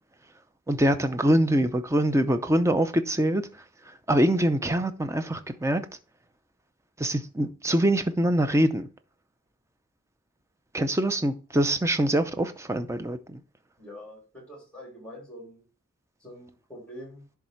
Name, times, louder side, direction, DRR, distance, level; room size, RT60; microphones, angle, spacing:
voice 1, 0.7-3.4 4.1-5.8 7.0-8.9 10.7-13.4, right 1 dB, 15° right, 0.5 m, -24 dB
voice 2, 13.8-15.6 16.2-17.2, left 1 dB, 5° left, 3.2 m, -44 dB
10.5 x 3.6 x 4.5 m
head